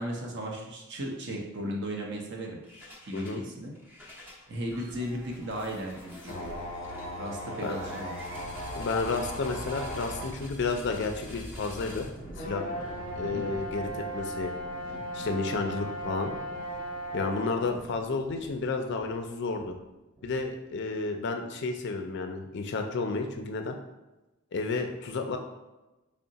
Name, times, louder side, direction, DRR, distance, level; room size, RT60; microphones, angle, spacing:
voice 1, 0.0-2.6 3.0-3.7 4.5-6.5 7.2-8.2 13.2-13.4, right 1 dB, 55° right, 0 dB, 0.7 m, -36 dB
sound 1, 2.6-3.4 3.8-20.7, equal, 10° right, 0.5 m, -45 dB
voice 2, 3.1-3.4 7.6-7.8 8.8-12.1 12.4-12.7 13.2-14.5 15.1-16.3 17.1-19.7 20.2-23.8 24.5-25.4, left 3 dB, 55° left, 4 dB, 0.4 m, -31 dB
sound 2, 6.3-10.4 11.0-11.1 12.4-17.6, equal, 40° left, 0.8 m, -37 dB
3.6 x 2.1 x 3.9 m, 1.0 s
head